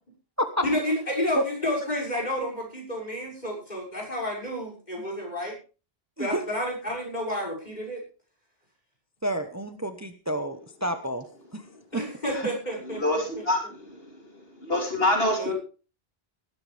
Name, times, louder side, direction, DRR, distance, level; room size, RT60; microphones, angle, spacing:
voice 1, 0.6-5.5 6.2-8.0 11.9-13.4 15.4-15.5, left 1 dB, 45° left, 0 dB, 6.8 m, -30 dB
voice 2, 9.2-11.2 11.5-11.6 11.9-12.0, right 1 dB, 15° right, 8 dB, 1.1 m, -29 dB
voice 3, 13.0-14.3 14.6-15.5, left 1 dB, 70° left, 2 dB, 3.5 m, -26 dB
18.5 x 13.0 x 3.5 m, 0.35 s
omnidirectional pair, 1.1 m